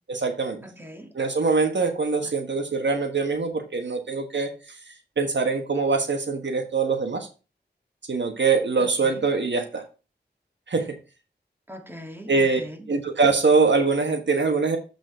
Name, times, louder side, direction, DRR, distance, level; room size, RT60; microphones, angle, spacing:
voice 1, 0.1-0.6 1.1-4.5 5.2-7.3 8.1-9.8 10.7-10.9 12.3-12.6 12.9-14.8, right 4 dB, 75° right, 1.3 m, -23 dB
voice 2, 0.6-1.1 2.2-2.3 8.8-9.2 11.7-12.8, equal, 10° right, 1.9 m, -41 dB
7.6 x 6.0 x 4.3 m
wide cardioid pair, 50°, 19 cm